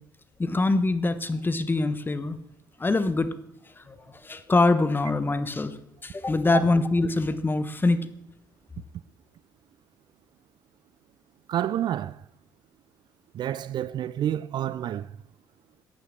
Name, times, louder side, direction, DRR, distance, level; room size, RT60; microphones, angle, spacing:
voice 1, 0.4-2.4 2.8-3.3 3.8-4.0 4.2-5.7 6.0-8.1, left 2 dB, 20° left, 1.0 m, -24 dB
voice 2, 11.5-12.2 13.3-15.1, right 11 dB, 50° right, 0.4 m, -29 dB
14.0 x 9.1 x 3.6 m
figure-of-eight pair, 50°, 10 cm